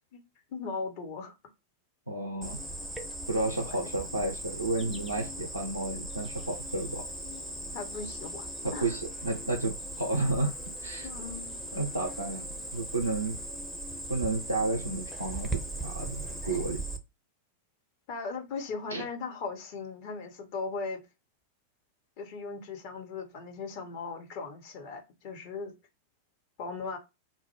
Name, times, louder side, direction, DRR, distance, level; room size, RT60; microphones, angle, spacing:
voice 1, 0.5-1.3 3.6-3.9 7.7-9.0 11.0-11.6 16.4-16.6 18.1-21.0 22.2-25.7 26.6-27.0, left 4 dB, 45° left, 0.7 m, -38 dB
voice 2, 2.1-2.6 3.3-7.0 8.6-10.5 10.8-11.1 11.7-12.4 12.7-13.4 14.1-16.8 18.9-19.0, right 2 dB, 85° right, 0.5 m, -31 dB
Cricket, 2.4-17.0, right 1 dB, ahead, 0.5 m, -39 dB
2.2 x 2.0 x 3.0 m
figure-of-eight pair, 90°, 0 cm